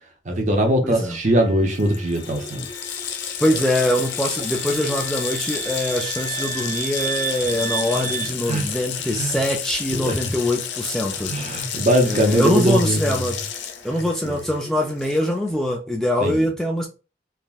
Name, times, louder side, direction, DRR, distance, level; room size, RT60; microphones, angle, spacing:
voice 1, 0.3-2.7 8.5-8.6 9.1-9.4 9.9-10.2 11.3-13.3 14.2-14.3 16.2-16.5, right 1 dB, 40° right, 0.6 m, -21 dB
voice 2, 0.8-1.2 3.4-11.3 12.0-13.4 13.8-16.9, left 1 dB, 5° left, 0.3 m, -23 dB
Wind instrument woodwind instrument, 1.1-8.3, right 6 dB, 20° left, 0.9 m, -33 dB
Water tap faucet, 1.4-1.5 1.7-15.5, left 8 dB, 90° left, 0.5 m, -31 dB
3.3 x 2.1 x 2.3 m
head